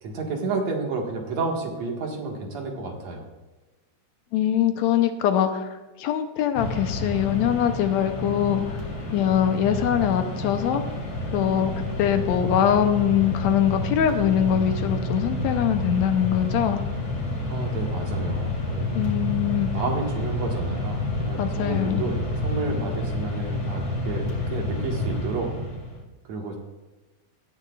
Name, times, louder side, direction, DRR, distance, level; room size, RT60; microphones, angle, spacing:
voice 1, 0.0-3.2 17.5-19.0 19.7-25.5 26.3-26.6, right 3 dB, 65° right, 1 dB, 2.8 m, -31 dB
voice 2, 4.3-8.8 9.1-10.8 11.3-16.8 18.9-19.7 21.4-22.0, left 10 dB, 75° left, 7 dB, 1.9 m, -23 dB
Mechanisms, 6.5-26.0, left 1 dB, 45° left, 2.7 m, -29 dB
17.0 x 10.0 x 2.4 m, 1.2 s
omnidirectional pair, 3.4 m